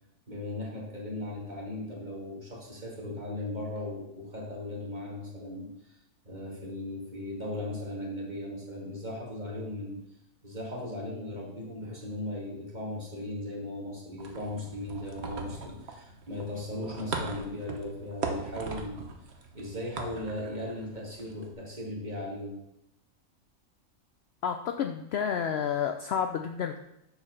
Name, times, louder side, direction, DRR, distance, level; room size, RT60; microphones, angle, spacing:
voice 1, 0.3-6.0 6.2-10.0 10.4-19.1 19.5-22.6, left 1 dB, 35° right, -3 dB, 2.2 m, -37 dB
sound 1, 14.2-21.5, right 4 dB, 55° right, 1.2 m, -40 dB
voice 2, 24.4-26.8, left 7 dB, 65° left, 6 dB, 0.7 m, -30 dB
7.0 x 5.0 x 6.5 m, 0.83 s
omnidirectional pair, 1.4 m